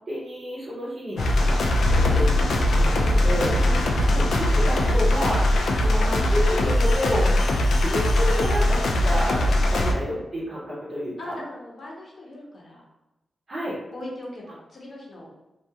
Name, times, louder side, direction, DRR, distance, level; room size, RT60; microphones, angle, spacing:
voice 1, 0.1-3.6 4.1-7.3 7.8-11.4 13.5-13.8, equal, 40° right, -9 dB, 0.6 m, -30 dB
sound 1, 1.2-9.9, left 1 dB, 90° left, 0.3 m, -21 dB
sound 2, 1.8-5.3, left 2 dB, 75° right, 0.8 m, -28 dB
voice 2, 3.6-3.9 11.2-12.8 13.9-15.3, left 1 dB, 45° left, -3 dB, 0.7 m, -39 dB
2.3 x 2.2 x 2.7 m, 0.95 s
wide cardioid pair, 175°, 0 cm